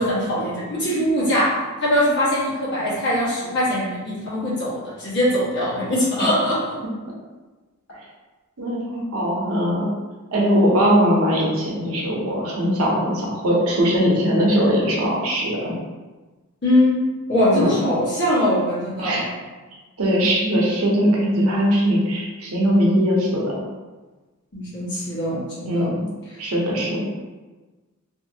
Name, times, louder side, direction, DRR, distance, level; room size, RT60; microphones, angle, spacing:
voice 1, 0.0-1.5 1.8-6.6 16.6-17.0 17.3-19.3 24.5-25.9 26.3-26.4, left 1 dB, 55° left, -8 dB, 1.2 m, -21 dB
voice 2, 8.6-9.9 10.3-15.7 17.5-17.7 19.0-19.3 20.0-23.5 25.6-25.9 26.4-27.0, equal, 75° right, -3 dB, 0.7 m, -20 dB
2.7 x 2.6 x 2.7 m, 1.3 s
head